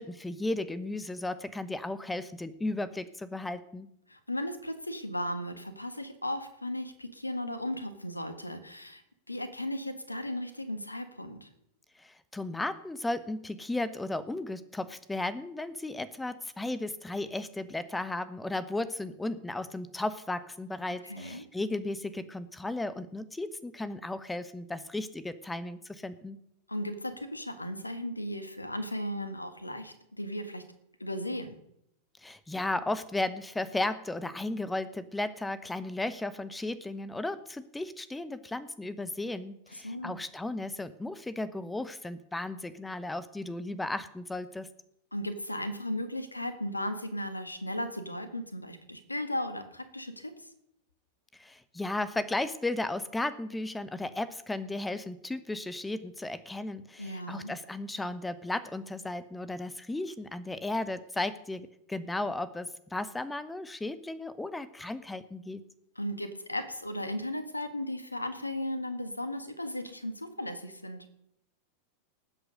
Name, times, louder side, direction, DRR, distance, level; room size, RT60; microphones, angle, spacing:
voice 1, 0.0-3.9 12.0-26.4 32.2-44.7 51.3-65.6, left 2 dB, 10° left, 15 dB, 1.0 m, -35 dB
voice 2, 4.1-9.0 9.3-11.5 21.0-21.4 26.7-30.6 31.0-31.6 39.7-40.2 45.1-50.3 57.0-57.5 66.0-71.1, left 1 dB, 85° left, 10 dB, 1.6 m, -36 dB
19.0 x 8.1 x 5.3 m, 0.76 s
figure-of-eight pair, 90°, 0 cm